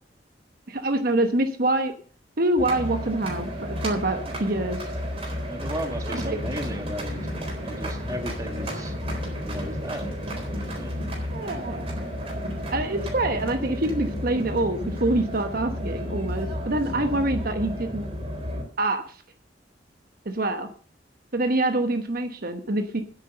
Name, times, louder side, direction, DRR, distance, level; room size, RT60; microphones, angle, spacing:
voice 1, 0.7-1.9 2.4-4.9 6.1-6.4 11.3-11.9 12.7-18.1 18.8-19.2 20.2-20.7 21.3-23.0, right 2 dB, 55° right, 7 dB, 1.1 m, -25 dB
sound 1, 2.6-18.6, equal, 35° right, 3.9 m, -32 dB
voice 2, 5.5-8.9 9.4-10.1 10.4-10.9, equal, 20° right, 5 dB, 1.9 m, -35 dB
9.8 x 8.4 x 6.5 m, 0.43 s
head